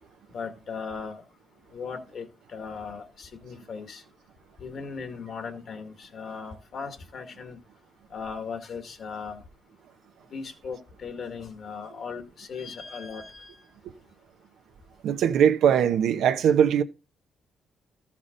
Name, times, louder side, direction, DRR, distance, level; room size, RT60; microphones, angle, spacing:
voice 1, 0.3-1.2 1.7-4.0 4.6-7.6 8.1-9.4 10.3-13.5, left 5 dB, 55° left, 1.9 m, -38 dB
voice 2, 15.0-16.8, right 8 dB, 80° right, 0.9 m, -20 dB
13.5 x 6.0 x 3.9 m
cardioid pair, 90°, 0 cm